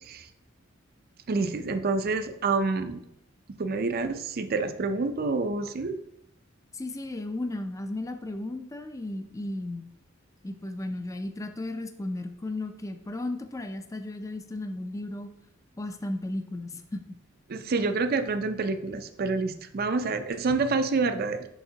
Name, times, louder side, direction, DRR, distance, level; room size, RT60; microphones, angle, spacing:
voice 1, 1.3-3.0 3.6-6.0 17.5-21.5, right 3 dB, 50° right, 8 dB, 0.5 m, -28 dB
voice 2, 6.7-9.9 10.4-15.3 15.8-17.2, left 2 dB, 15° left, 6 dB, 0.4 m, -35 dB
7.0 x 5.7 x 2.8 m, 0.75 s
head